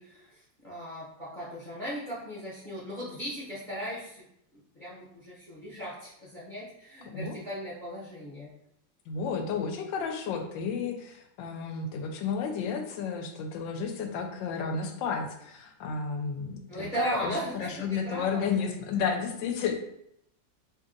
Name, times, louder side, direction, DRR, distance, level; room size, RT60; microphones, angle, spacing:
voice 1, 0.0-4.3 4.5-8.5 16.7-18.6, right 1 dB, 35° left, -8 dB, 0.8 m, -38 dB
voice 2, 9.1-19.7, left 5 dB, 85° left, 5 dB, 1.3 m, -32 dB
2.9 x 2.8 x 3.7 m, 0.75 s
omnidirectional pair, 2.0 m